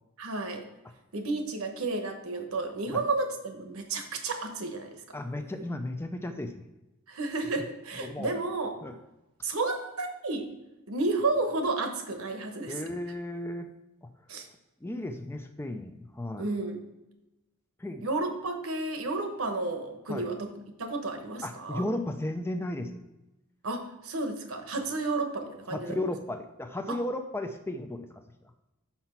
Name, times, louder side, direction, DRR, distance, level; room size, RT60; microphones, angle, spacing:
voice 1, 0.2-0.6 1.1-5.0 7.1-8.8 9.4-10.5 10.9-12.8 14.3-14.5 16.4-16.8 18.0-20.5 20.8-21.8 23.6-26.1 26.9-27.0, right 3 dB, 70° right, 5 dB, 1.0 m, -32 dB
voice 2, 5.1-6.6 7.6-7.7 7.9-8.3 8.8-8.9 12.7-13.7 14.8-16.5 17.8-18.1 20.1-20.3 21.4-23.0 25.7-28.1, left 1 dB, 10° left, 6 dB, 0.4 m, -34 dB
5.8 x 5.6 x 4.3 m, 0.98 s
head